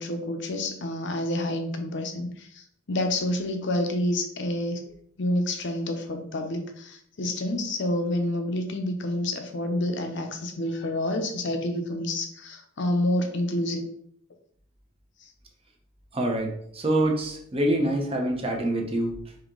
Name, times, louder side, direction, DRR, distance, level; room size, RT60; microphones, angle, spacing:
voice 1, 0.0-4.8 5.2-13.8 15.2-15.3, left 1 dB, 60° left, 5 dB, 0.7 m, -28 dB
voice 2, 16.1-19.1, right 1 dB, 30° right, 2 dB, 0.7 m, -25 dB
5.0 x 2.8 x 3.7 m, 0.65 s
head